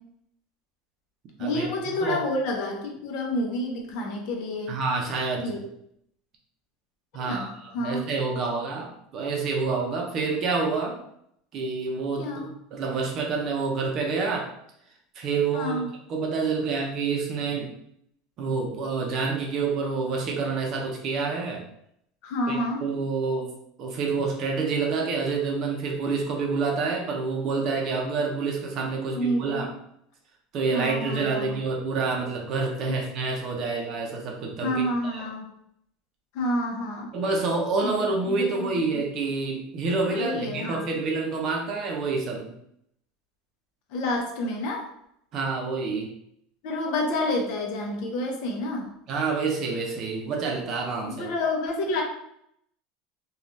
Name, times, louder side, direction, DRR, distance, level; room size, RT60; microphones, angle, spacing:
voice 1, 1.4-4.7 5.4-5.6 7.2-8.0 12.2-12.5 15.5-15.9 22.2-22.8 29.1-29.6 30.7-31.5 32.8-33.0 34.6-35.5 36.3-37.1 37.8-37.9 38.3-39.0 40.1-40.9 43.9-44.9 46.6-48.9 51.1-52.0, left 1 dB, 55° left, 1 dB, 0.7 m, -29 dB
voice 2, 4.7-5.6 7.1-11.0 11.5-12.3 12.7-14.5 15.1-15.8 16.1-17.7 18.4-21.6 22.5-23.5 23.8-29.7 30.5-35.3 37.1-42.5 45.3-46.1 49.1-51.3, right 4 dB, 35° right, 0 dB, 0.6 m, -28 dB
3.2 x 2.3 x 2.6 m, 0.73 s
cardioid pair, 165°, 0 cm